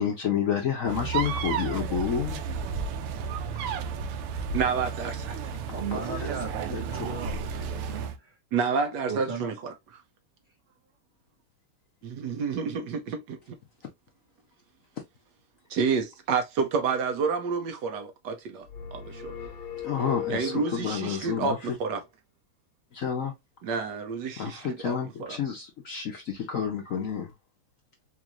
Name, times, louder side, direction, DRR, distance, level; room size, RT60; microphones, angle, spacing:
voice 1, 0.0-2.4 5.7-5.8 6.1-6.3 6.7-7.2 19.8-21.6 22.9-23.3 24.4-27.3, left 7 dB, 75° left, 0.7 m, -30 dB
sound 1, 0.9-8.2, right 6 dB, 85° right, 1.6 m, -32 dB
voice 2, 4.5-5.5 8.5-9.7 12.0-13.6 15.7-19.3 20.3-22.0 23.6-25.4, right 5 dB, 70° right, 1.1 m, -29 dB
voice 3, 5.7-8.3 9.1-9.5, right 6 dB, 40° right, 1.0 m, -37 dB
sound 2, 18.7-21.1, left 9 dB, 35° left, 1.0 m, -38 dB
4.4 x 2.5 x 2.9 m
omnidirectional pair, 2.4 m